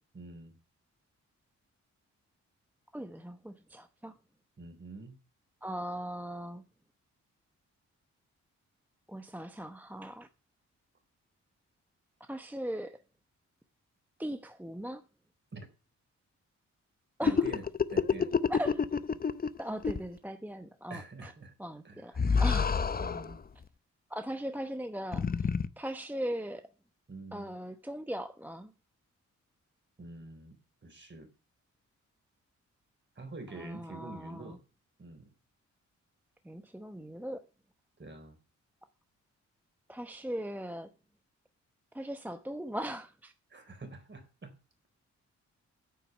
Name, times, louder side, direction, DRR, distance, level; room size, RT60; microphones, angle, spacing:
voice 1, 0.1-0.5 4.6-5.1 15.5-15.7 17.2-17.6 17.9-18.3 20.9-21.5 21.8-22.4 23.0-23.4 27.1-27.5 30.0-30.6 30.8-31.3 33.2-34.6 35.0-35.3 38.0-38.4 43.5-44.5, right 2 dB, 40° right, 4.0 m, -46 dB
voice 2, 2.9-4.2 5.6-6.6 9.1-10.3 12.2-13.0 14.2-15.0 17.2-17.5 18.5-18.9 19.6-21.3 21.6-22.8 24.1-25.5 25.8-26.7 27.3-28.7 33.5-34.6 36.4-37.5 39.9-40.9 41.9-43.3, equal, 5° right, 0.9 m, -39 dB
sound 1, 17.2-19.6 19.8-20.0 22.2-23.4 25.1-25.7, left 5 dB, 30° left, 0.7 m, -28 dB
9.6 x 6.9 x 7.2 m
cardioid pair, 75°, 29 cm